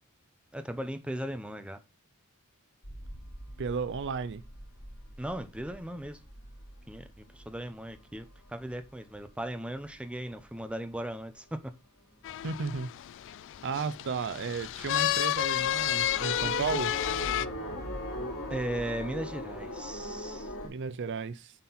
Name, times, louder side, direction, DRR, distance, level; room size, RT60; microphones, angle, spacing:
voice 1, 0.5-1.8 5.2-6.2 6.9-7.1 7.3-11.6 18.5-20.5, right 1 dB, 5° right, 0.6 m, -37 dB
sound 1, 2.8-11.7 12.1-12.8 13.1-13.2 13.5-20.7, equal, 80° left, 3.3 m, -41 dB
voice 2, 3.6-4.4 12.4-12.9 13.6-16.9 20.6-21.5, right 5 dB, 55° right, 0.5 m, -34 dB
sound 2, 12.2-17.5, left 12 dB, 60° left, 0.3 m, -31 dB
7.5 x 4.3 x 4.1 m
head